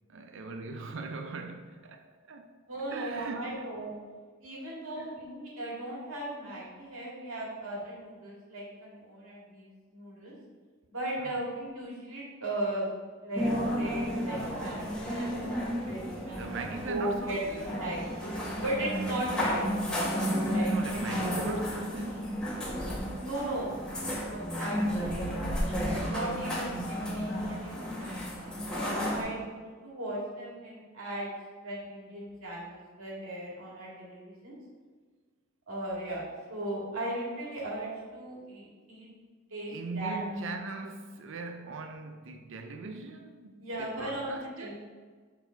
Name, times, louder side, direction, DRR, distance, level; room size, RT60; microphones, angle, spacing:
voice 1, 0.1-2.5 2.9-3.7 5.0-5.3 11.2-11.4 16.3-17.8 20.7-23.3 29.2-29.6 39.7-44.7, right 3 dB, 65° right, 0.5 m, -40 dB
voice 2, 2.7-3.9 4.4-10.3 10.9-12.9 13.2-15.4 15.9-16.4 16.9-18.3 18.6-19.9 20.5-20.7 21.2-21.6 23.3-23.7 24.2-31.3 31.6-34.6 35.7-36.2 36.5-39.1 39.5-40.2 43.6-44.7, right 1 dB, 80° right, 2.1 m, -37 dB
sound 1, 13.3-29.2, equal, 5° left, 1.6 m, -32 dB
7.0 x 4.0 x 4.5 m
head